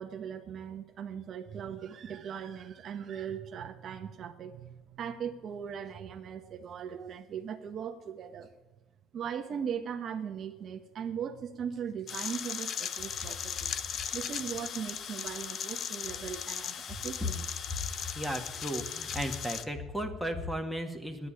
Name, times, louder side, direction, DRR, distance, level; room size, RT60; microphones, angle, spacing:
voice 1, 0.0-8.5 9.1-13.7 14.1-17.5, right 8 dB, 50° right, 6 dB, 1.1 m, -39 dB
sound 1, 12.1-19.6, left 8 dB, 55° left, 0.8 m, -37 dB
voice 2, 18.2-21.3, equal, ahead, 6 dB, 1.9 m, -35 dB
9.9 x 9.8 x 10.0 m, 1.1 s
supercardioid pair, 90°, 0 cm